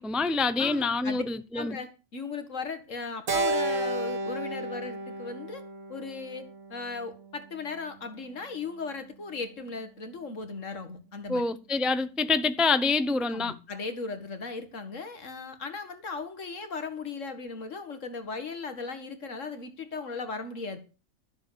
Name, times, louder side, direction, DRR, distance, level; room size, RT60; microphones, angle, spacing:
voice 1, 0.0-1.8 11.3-13.5, left 3 dB, ahead, 0.6 m, -26 dB
voice 2, 0.6-1.2 1.5-5.6 5.9-6.4 6.7-11.4 13.3-20.8, left 4 dB, 65° left, 2.1 m, -37 dB
Keyboard (musical), 3.3-7.7, right 2 dB, 80° right, 2.1 m, -33 dB
13.5 x 7.2 x 6.9 m
omnidirectional pair, 1.4 m